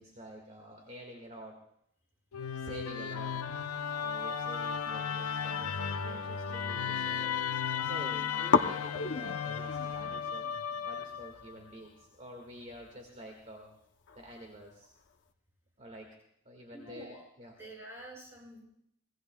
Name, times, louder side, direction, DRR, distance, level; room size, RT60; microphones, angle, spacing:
voice 1, 0.0-1.6 2.5-3.4 4.0-13.7 14.1-14.9 15.8-16.2 16.5-17.6, right 1 dB, 35° right, 1 dB, 1.9 m, -48 dB
Musical instrument, 2.3-11.5, left 7 dB, 85° left, 0.6 m, -35 dB
sound 1, 4.9-6.7 7.0-7.7 7.9-8.0 8.5-15.3, left 4 dB, 55° left, 0.8 m, -36 dB
voice 2, 16.7-17.2 17.6-18.6, right 1 dB, 10° right, -2 dB, 6.9 m, -47 dB
24.5 x 19.5 x 2.3 m, 0.72 s
head